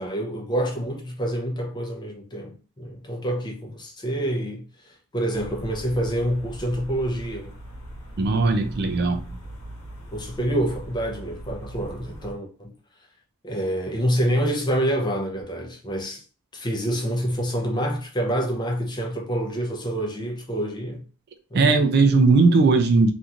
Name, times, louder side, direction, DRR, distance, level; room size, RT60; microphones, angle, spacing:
voice 1, 0.0-7.5 10.1-12.7 13.4-16.2 16.5-21.0 21.5-21.8, right 1 dB, 20° left, 0.6 m, -27 dB
sound 1, 5.3-12.3, right 1 dB, 70° left, 1.0 m, -40 dB
voice 2, 8.2-9.2 21.5-23.1, right 3 dB, 45° right, 0.3 m, -18 dB
2.9 x 2.5 x 2.4 m
head